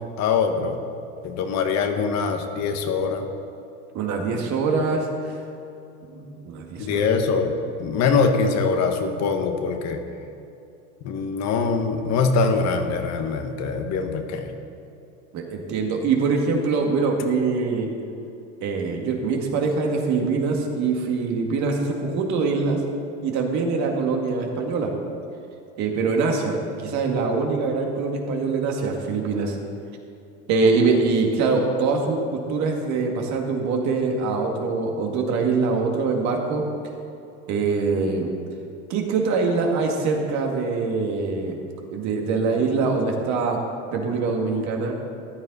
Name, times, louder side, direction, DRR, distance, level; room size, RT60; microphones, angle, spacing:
voice 1, 0.2-0.8 1.2-3.3 6.8-7.5 7.8-10.0 11.0-14.5, left 5 dB, 50° left, 6 dB, 1.2 m, -23 dB
voice 2, 3.9-5.1 6.0-7.1 15.3-17.9 18.6-22.8 23.2-24.9 25.8-29.6 30.5-36.6 37.5-38.3 38.9-41.6 41.9-43.6 43.9-44.9, right 4 dB, 55° right, 1 dB, 2.1 m, -23 dB
14.0 x 10.5 x 4.1 m, 2.7 s
supercardioid pair, 115°, 34 cm